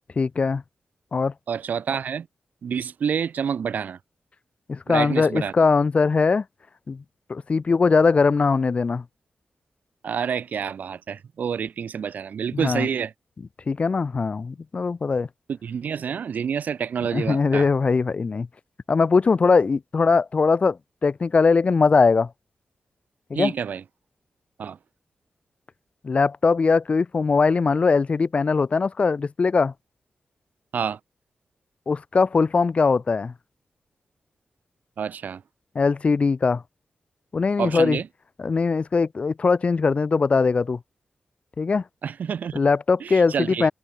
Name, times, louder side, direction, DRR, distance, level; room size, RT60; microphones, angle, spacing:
voice 1, 0.2-0.6 1.1-1.3 4.7-6.4 6.9-7.0 7.3-9.0 12.5-12.9 13.7-15.3 17.1-18.5 18.9-22.3 23.3-23.5 26.0-29.7 31.9-33.3 35.7-36.6 37.3-38.0 38.4-40.8 41.6-41.8 42.5-43.7, left 4 dB, 45° left, 1.5 m, -21 dB
voice 2, 1.5-2.3 2.6-4.0 4.9-5.5 10.0-13.1 15.5-17.7 23.3-23.8 24.6-24.8 30.7-31.0 35.0-35.4 37.6-38.1 42.0-42.6 43.0-43.7, right 7 dB, 80° right, 2.3 m, -28 dB
wide cardioid pair, 95°, 3 cm